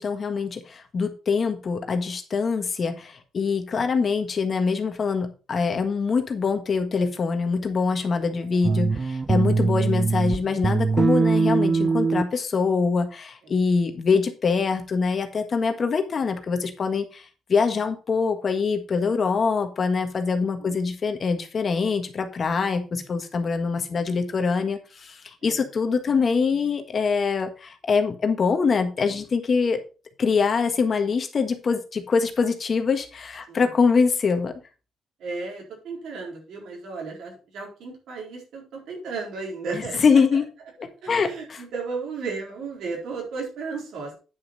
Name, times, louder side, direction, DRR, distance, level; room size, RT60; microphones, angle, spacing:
voice 1, 0.0-29.8 30.2-34.5 40.0-40.4 40.8-41.6, left 5 dB, 45° left, 7 dB, 1.6 m, -24 dB
voice 2, 8.4-8.8 13.4-13.5 20.6-20.8 25.4-25.6 33.5-33.8 35.2-40.2 41.0-44.1, right 4 dB, 75° right, -1 dB, 4.3 m, -34 dB
sound 1, 8.6-10.4 10.6-12.2, right 4 dB, 35° right, 0.6 m, -22 dB
9.6 x 5.9 x 4.2 m, 0.34 s
cardioid pair, 90°, 0 cm